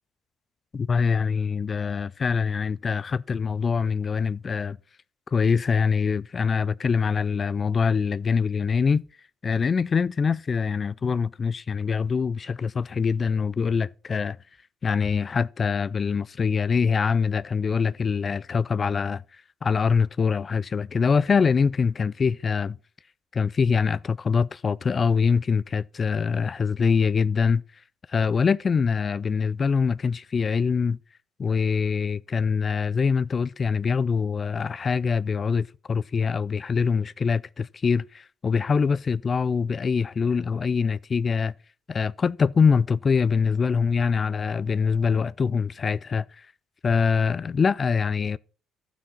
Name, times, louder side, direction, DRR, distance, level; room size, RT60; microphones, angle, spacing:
voice 1, 0.7-4.8 5.3-9.0 9.4-14.4 14.8-22.8 23.3-27.6 28.1-31.0 31.4-41.5 41.9-46.5 46.8-48.4, left 5 dB, 40° left, 0.4 m, -24 dB
12.5 x 6.3 x 5.7 m
supercardioid pair, 65°, 0 cm